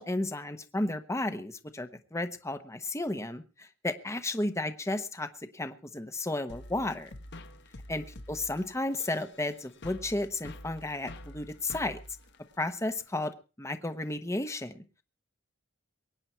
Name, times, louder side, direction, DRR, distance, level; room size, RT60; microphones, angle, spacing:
voice 1, 0.0-5.3 5.5-7.1 7.9-12.0 12.6-13.3 13.6-14.8, left 2 dB, 15° left, 9 dB, 1.0 m, -33 dB
sound 1, 6.5-13.1, left 1 dB, 55° left, 1.1 m, -47 dB
23.5 x 9.8 x 4.5 m, 0.34 s
head